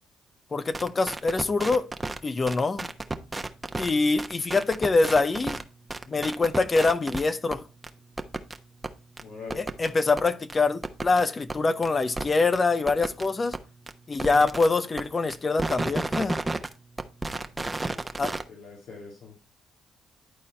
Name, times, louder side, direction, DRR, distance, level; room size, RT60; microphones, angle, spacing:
voice 1, 0.5-1.9 2.2-2.8 3.8-5.6 6.1-7.6 9.6-13.6 14.1-16.4 18.2-18.3, left 3 dB, 35° left, 0.8 m, -24 dB
sound 1, 0.7-2.2 2.5-3.9 4.2-5.6 5.9-7.3 7.5-7.6 7.8-7.9 8.2-8.6 8.8-8.9 9.2-9.3 9.5-9.9 10.2-10.3 10.5-10.6 10.8-11.2 11.5-11.6 11.8-11.9 12.2-12.3 12.5-12.6 12.9-13.3 13.5-13.6 13.9-14.0 14.2-14.7 15.0-15.1 15.3-16.7 17.0-18.4, right 2 dB, 20° right, 1.0 m, -31 dB
voice 2, 9.2-9.6 14.2-14.5 17.3-19.4, left 4 dB, 75° left, 2.6 m, -44 dB
11.0 x 4.2 x 4.4 m
supercardioid pair, 55°, 0 cm